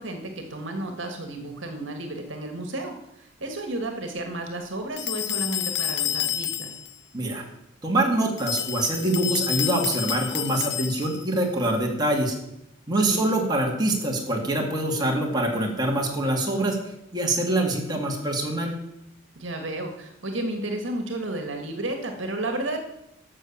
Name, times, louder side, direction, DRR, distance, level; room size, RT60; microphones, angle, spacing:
voice 1, 0.0-6.7 13.1-13.3 19.4-22.8, right 2 dB, 70° right, 5 dB, 1.8 m, -32 dB
sound 1, 5.0-6.9 8.4-11.3, left 11 dB, 60° left, 0.8 m, -29 dB
voice 2, 7.1-7.4 7.8-12.4 12.9-16.8 17.1-18.7, right 1 dB, 20° right, 0 dB, 2.3 m, -24 dB
13.0 x 6.7 x 7.3 m, 0.82 s
head